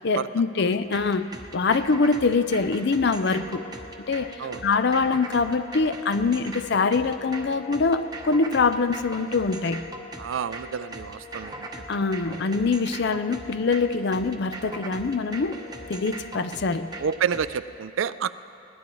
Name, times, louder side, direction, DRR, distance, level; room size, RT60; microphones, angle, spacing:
voice 1, 0.0-3.6 4.1-9.8 11.9-16.9, left 4 dB, 60° left, 12 dB, 0.5 m, -24 dB
sound 1, 0.7-17.6, right 2 dB, 20° right, 0.9 m, -40 dB
sound 2, 3.1-17.2, left 3 dB, 35° left, 2.0 m, -45 dB
voice 2, 10.2-12.0 12.3-12.4 17.0-18.4, right 7 dB, 85° right, 14 dB, 0.4 m, -29 dB
21.0 x 17.5 x 3.1 m, 2.7 s
head